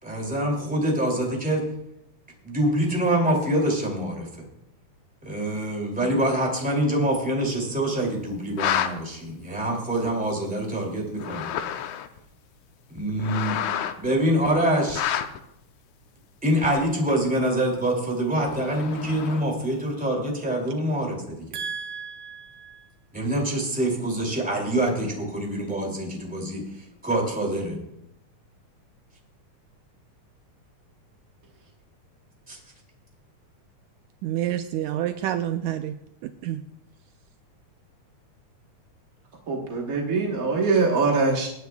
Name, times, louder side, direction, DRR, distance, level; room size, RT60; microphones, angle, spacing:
voice 1, 0.0-1.6 2.4-4.3 5.2-11.5 12.9-13.6 14.0-15.1 16.4-21.5 23.1-26.6 27.0-27.8 32.5-32.6, right 1 dB, 5° right, -1 dB, 2.1 m, -25 dB
sound 1, 8.4-8.9 10.1-10.2 11.1-12.2 13.0-14.1 14.9-15.4 16.6-17.0 18.5-19.6, left 10 dB, 80° left, 1.9 m, -29 dB
voice 2, 21.5-22.9 34.2-36.6, right 11 dB, 80° right, 8 dB, 1.8 m, -30 dB
voice 3, 39.5-41.5, right 4 dB, 55° right, 0 dB, 0.9 m, -23 dB
24.0 x 9.4 x 2.3 m, 0.82 s
omnidirectional pair, 3.6 m